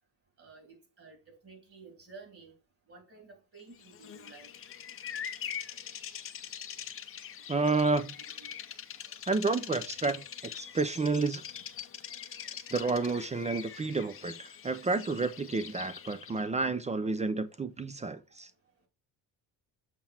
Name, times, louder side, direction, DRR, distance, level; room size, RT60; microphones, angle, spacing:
voice 1, 0.4-2.5 2.9-4.5 7.5-8.6 17.0-17.5 18.1-18.2, right 4 dB, 35° right, 3.0 m, -54 dB
Bird vocalization bird call bird song, 3.8-16.5, left 9 dB, 35° left, 0.6 m, -43 dB
voice 2, 7.5-8.1 9.3-11.4 12.7-18.5, right 3 dB, 20° right, 0.5 m, -30 dB
7.3 x 3.9 x 4.3 m
cardioid pair, 135°, 37 cm